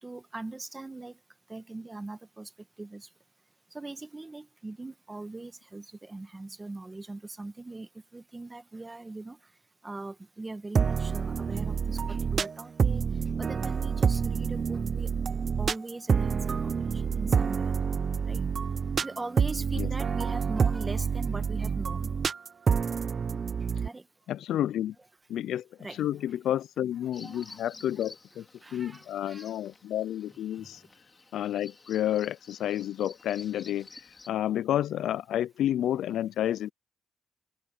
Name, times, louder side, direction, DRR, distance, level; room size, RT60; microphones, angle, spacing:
voice 1, 0.0-1.2 1.5-2.5 2.8-3.1 3.7-9.4 9.8-13.0 13.4-15.1 15.6-18.0 18.2-18.4 19.0-22.1 23.8-24.0 25.8-26.0 27.2-27.8 28.6-29.5 30.6-30.7, right 2 dB, 20° right, 1.4 m, -41 dB
sound 1, 10.7-23.9, right 6 dB, 40° right, 0.5 m, -28 dB
voice 2, 24.3-24.9 25.3-28.4 28.7-30.8 31.3-36.7, left 11 dB, 80° left, 0.3 m, -30 dB
Bird vocalization bird call bird song, 27.1-34.3, left 4 dB, 30° left, 4.7 m, -52 dB
open air
cardioid pair, 110°, 0 cm